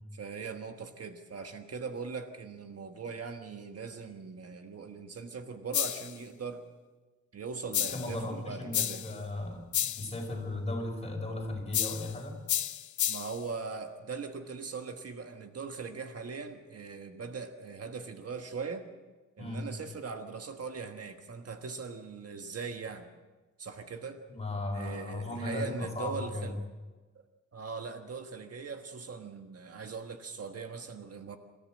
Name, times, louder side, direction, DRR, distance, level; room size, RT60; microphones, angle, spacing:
voice 1, 0.1-6.6 7.3-9.0 13.1-18.9 19.4-23.1 23.6-24.2 24.7-26.5 27.5-31.4, right 5 dB, 55° right, 6 dB, 1.4 m, -40 dB
sound 1, 5.7-6.2 7.7-8.2 8.7-9.2 9.7-10.1 11.7-12.1 12.5-13.4, left 11 dB, 80° left, 0.7 m, -31 dB
voice 2, 7.9-12.4 19.4-19.7 24.3-26.5, left 2 dB, 20° left, 1 dB, 5.0 m, -36 dB
27.0 x 14.0 x 7.6 m, 1.3 s
wide cardioid pair, 165°, 29 cm